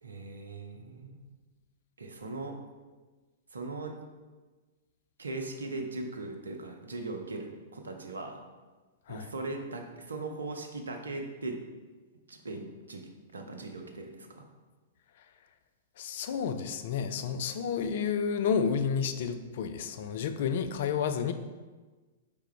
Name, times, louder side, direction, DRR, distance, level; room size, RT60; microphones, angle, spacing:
voice 1, 0.0-1.3 2.0-2.6 3.5-4.0 5.2-8.4 9.1-11.6 12.3-14.5, right 2 dB, 75° right, 4 dB, 0.6 m, -39 dB
voice 2, 16.0-21.3, left 6 dB, 55° left, 9 dB, 0.3 m, -31 dB
4.7 x 3.4 x 3.3 m, 1.3 s
figure-of-eight pair, 105°, 0 cm